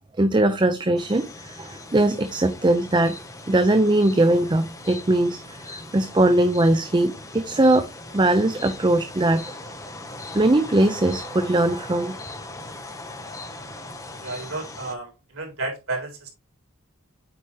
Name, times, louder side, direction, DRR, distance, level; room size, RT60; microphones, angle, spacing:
voice 1, 0.2-3.2 3.5-5.4 5.7-9.5 10.3-12.1, right 1 dB, 20° right, 0.6 m, -20 dB
sound 1, 1.0-14.9, left 2 dB, 15° left, 1.0 m, -39 dB
voice 2, 14.2-16.3, right 2 dB, 90° right, 3.9 m, -32 dB
8.6 x 4.9 x 3.3 m
head